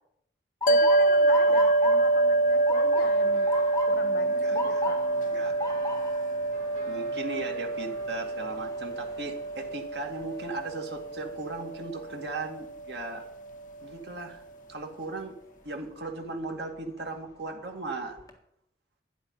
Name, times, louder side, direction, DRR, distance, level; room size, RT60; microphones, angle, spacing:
Motor vehicle (road) / Siren, 0.6-12.5 12.9-13.4 14.2-14.5 16.3-16.6 17.1-17.2 17.6-18.3, left 2 dB, 20° left, 1.6 m, -39 dB
voice 1, 0.7-3.5 3.9-5.0, left 3 dB, 75° left, 8 dB, 1.1 m, -38 dB
sound 1, 0.7-13.2, right 2 dB, 45° left, 0.7 m, -26 dB
sound 2, 3.2-10.9, equal, 40° right, 3.3 m, -50 dB
voice 2, 4.4-4.8 5.3-5.6 6.9-13.3 13.8-14.4 14.7-15.4 15.6-18.2, right 3 dB, 75° right, 3 dB, 2.3 m, -37 dB
12.5 x 9.8 x 5.6 m, 0.74 s
head